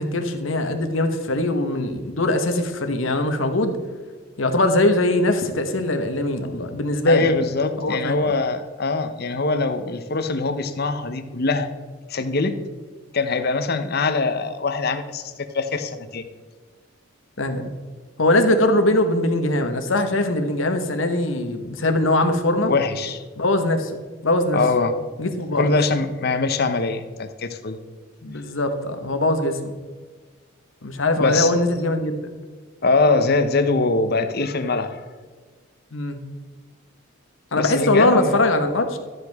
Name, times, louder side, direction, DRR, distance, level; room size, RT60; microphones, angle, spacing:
voice 1, 0.0-3.8 4.4-7.3 7.8-8.2 17.4-17.7 18.2-22.7 23.4-24.6 25.2-25.7 28.2-29.8 30.8-32.1 35.9-36.2 37.5-39.0, left 1 dB, 75° left, 7 dB, 1.2 m, -21 dB
voice 2, 7.1-11.7 12.1-12.5 13.1-16.2 22.7-23.2 24.5-24.9 25.5-27.8 31.2-31.5 32.8-35.0 37.5-38.4, left 3 dB, 50° left, 9 dB, 0.8 m, -22 dB
12.5 x 7.9 x 3.5 m, 1.5 s
head